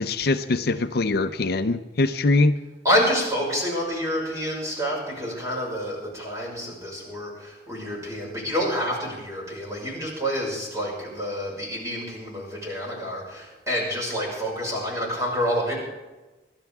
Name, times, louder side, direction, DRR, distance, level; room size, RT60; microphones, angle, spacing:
voice 1, 0.0-2.5, left 3 dB, 60° left, 9 dB, 0.6 m, -22 dB
voice 2, 2.8-15.8, equal, 20° right, -4 dB, 5.8 m, -28 dB
25.5 x 12.5 x 3.6 m, 1.2 s
head